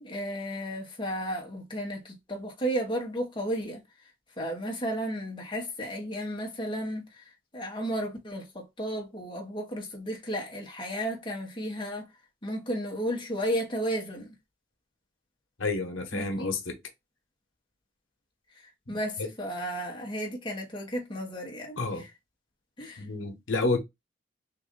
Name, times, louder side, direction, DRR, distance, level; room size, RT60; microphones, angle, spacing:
voice 1, 0.0-3.8 4.4-7.2 7.5-12.1 12.4-14.3 16.1-16.5 18.9-22.1 22.8-23.0, equal, 25° left, 1.1 m, -33 dB
voice 2, 15.6-16.8 18.9-19.3 21.8-22.1 23.0-23.8, left 3 dB, 80° left, 1.0 m, -30 dB
3.8 x 2.6 x 3.6 m
head